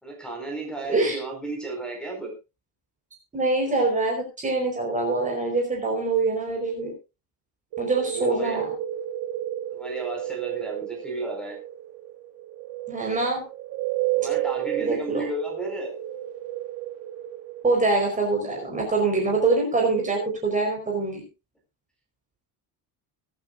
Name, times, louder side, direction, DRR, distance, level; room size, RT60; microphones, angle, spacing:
voice 1, 0.0-2.3 8.0-8.6 9.7-11.6 14.2-16.0, right 2 dB, ahead, 2 dB, 5.1 m, -33 dB
voice 2, 3.3-6.9 7.8-8.7 12.9-13.4 14.8-15.2 17.6-21.2, right 3 dB, 20° right, 0 dB, 4.8 m, -24 dB
sound 1, 7.7-20.3, right 12 dB, 80° right, 1.7 m, -32 dB
23.5 x 9.1 x 2.6 m, 0.29 s
cardioid pair, 175°, 40 cm